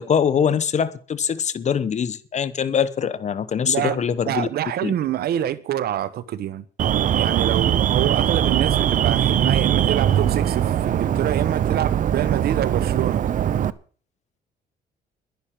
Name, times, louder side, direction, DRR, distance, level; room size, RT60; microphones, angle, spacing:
voice 1, 0.0-4.5 4.8-4.9, left 7 dB, 45° left, 1.1 m, -23 dB
voice 2, 3.6-6.6 7.2-13.3, right 11 dB, 65° right, 1.0 m, -26 dB
Alarm, 6.8-13.7, right 10 dB, 50° right, 0.8 m, -21 dB
11.5 x 10.5 x 7.6 m
cardioid pair, 115°, 17 cm